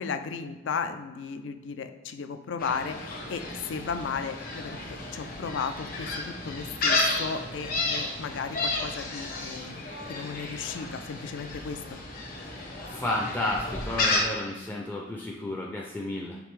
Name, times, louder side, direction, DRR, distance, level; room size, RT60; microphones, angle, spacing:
voice 1, 0.0-11.8, left 5 dB, 80° left, 9 dB, 0.4 m, -35 dB
Gull seagull, 2.6-14.2, left 2 dB, 55° left, 0.9 m, -32 dB
voice 2, 12.9-16.4, left 2 dB, 10° left, -2 dB, 0.4 m, -32 dB
5.1 x 3.2 x 3.2 m, 1.2 s
head